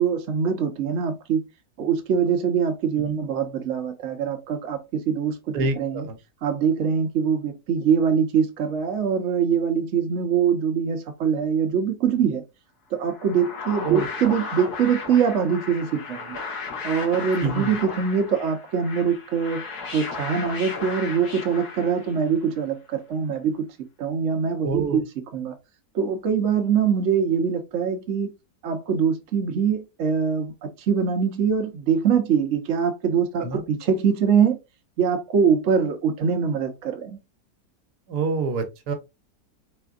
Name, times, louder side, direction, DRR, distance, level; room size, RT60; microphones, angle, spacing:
voice 1, 0.0-1.4 1.8-6.1 6.4-12.4 12.9-16.4 16.8-19.6 19.9-23.7 24.0-25.5 25.9-28.3 28.6-34.6 35.0-37.2, right 7 dB, 55° right, 1.0 m, -23 dB
voice 2, 5.5-6.2 13.8-14.1 17.4-17.7 24.6-25.0 33.4-33.6 38.1-38.9, right 4 dB, 80° right, 1.4 m, -26 dB
sound 1, 13.0-22.4, left 4 dB, 70° left, 1.7 m, -35 dB
4.2 x 3.7 x 2.4 m
omnidirectional pair, 1.7 m